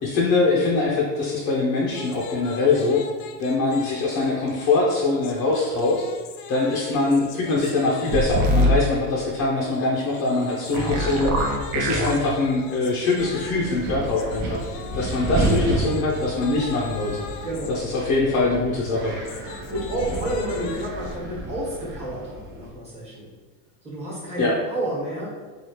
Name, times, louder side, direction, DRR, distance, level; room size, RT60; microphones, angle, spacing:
voice 1, 0.0-3.0 3.4-6.0 6.5-17.2 17.7-19.1 24.4-24.5, left 3 dB, 35° left, -5 dB, 0.5 m, -23 dB
sound 1, 1.9-8.7 9.6-17.7 18.9-21.2, left 6 dB, 85° left, 0.5 m, -41 dB
sound 2, 8.1-8.8 10.7-12.1, equal, 80° right, 0.8 m, -22 dB
Wind, 13.2-22.7, right 2 dB, 40° right, 0.6 m, -31 dB
voice 2, 17.4-17.8 18.2-18.6 19.7-23.3 23.8-25.3, right 1 dB, 15° right, -8 dB, 1.2 m, -30 dB
3.2 x 2.5 x 2.8 m, 1.3 s
supercardioid pair, 135°, 47 cm